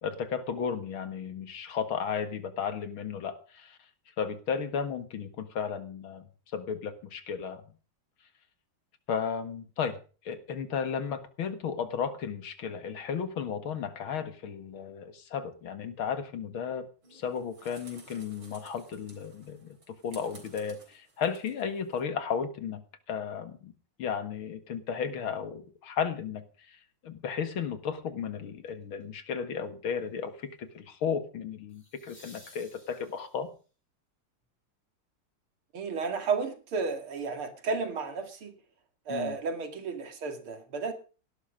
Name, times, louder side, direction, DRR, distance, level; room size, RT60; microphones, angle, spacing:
voice 1, 0.0-3.8 4.2-6.2 6.5-7.6 9.1-10.0 10.2-16.8 17.1-19.8 20.0-22.8 23.1-23.7 24.0-26.8 27.0-33.5 39.1-39.4, left 7 dB, 75° left, 10 dB, 2.5 m, -34 dB
sound 1, 17.0-22.0, right 3 dB, 65° right, 4.5 m, -55 dB
sound 2, 28.7-29.0 31.7-33.6 36.5-36.6, left 1 dB, 25° left, 6.1 m, -55 dB
voice 2, 35.7-38.5 39.1-40.9, right 4 dB, 85° right, 7 dB, 3.1 m, -32 dB
18.0 x 11.5 x 5.1 m, 0.37 s
omnidirectional pair, 2.3 m